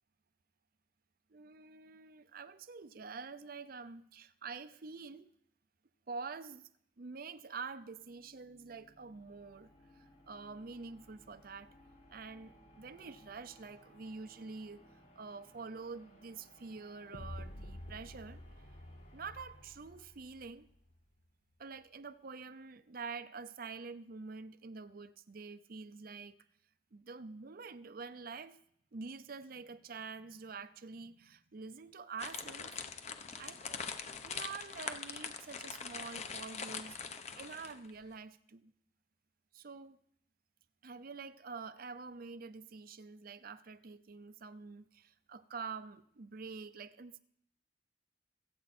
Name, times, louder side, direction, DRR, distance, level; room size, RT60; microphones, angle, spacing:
voice 1, 1.3-5.3 6.1-6.7 7.0-11.7 12.1-14.8 15.2-18.4 19.1-20.7 21.6-26.4 26.9-28.6 28.9-32.7 33.4-33.9 34.2-38.7 39.5-40.0 40.8-47.2, right 4 dB, 55° right, 0.6 m, -47 dB
sound 1, 7.5-20.6, equal, 65° left, 4.8 m, -63 dB
sound 2, 17.1-21.1, left 1 dB, 80° left, 1.2 m, -49 dB
sound 3, 32.2-37.9, left 6 dB, 40° left, 0.9 m, -43 dB
24.0 x 8.1 x 4.3 m
head